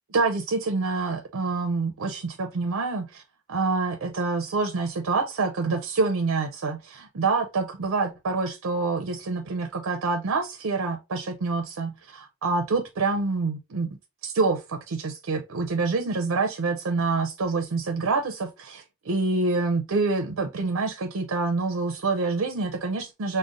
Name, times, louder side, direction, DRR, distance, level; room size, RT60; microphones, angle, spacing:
voice 1, 0.1-3.2 3.5-13.9 14.2-23.4, right 3 dB, 90° right, 0.5 m, -27 dB
5.1 x 2.1 x 2.4 m
head